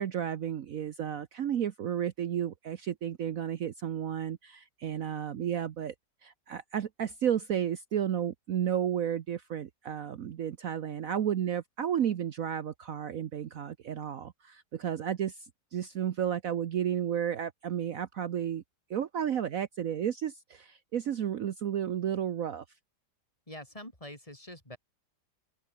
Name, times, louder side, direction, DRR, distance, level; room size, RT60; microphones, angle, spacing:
voice 1, 0.0-5.9 6.2-18.6 18.9-22.6, right 9 dB, 60° right, 1.2 m, -32 dB
voice 2, 23.5-24.8, left 1 dB, 20° left, 5.1 m, -45 dB
open air
omnidirectional pair, 1.8 m